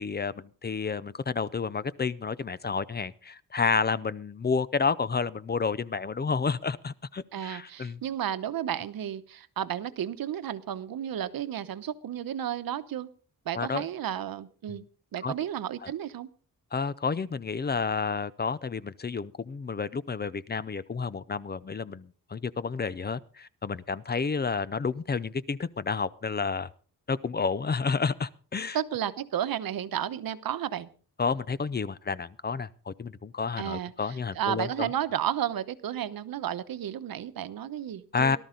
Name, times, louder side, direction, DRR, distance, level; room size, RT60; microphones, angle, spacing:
voice 1, 0.0-8.0 13.5-13.9 14.7-14.8 15.2-15.3 16.7-26.7 27.1-28.8 31.2-34.9 38.1-38.4, left 5 dB, 30° left, 17 dB, 0.6 m, -30 dB
voice 2, 7.3-13.1 13.4-14.8 15.1-16.3 28.7-30.9 33.6-38.4, right 10 dB, 85° right, 13 dB, 1.0 m, -32 dB
18.0 x 12.5 x 3.9 m, 0.41 s
wide cardioid pair, 130°, 35 cm